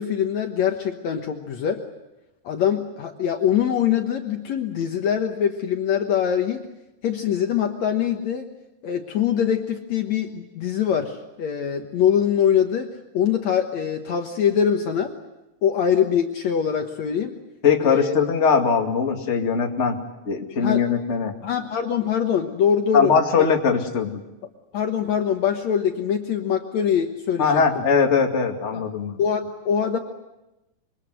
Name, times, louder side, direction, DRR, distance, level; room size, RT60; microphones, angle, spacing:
voice 1, 0.0-1.9 2.4-6.6 7.0-8.5 8.8-15.1 15.6-17.3 17.8-18.1 20.6-20.8 21.4-23.5 24.7-27.8 28.7-28.8 29.2-30.0, left 8 dB, 60° left, 4 dB, 2.3 m, -23 dB
voice 2, 17.6-20.0 20.3-21.3 22.9-24.2 27.4-29.2, left 6 dB, 25° left, 2 dB, 2.1 m, -21 dB
26.5 x 24.0 x 8.0 m, 0.97 s
omnidirectional pair, 3.9 m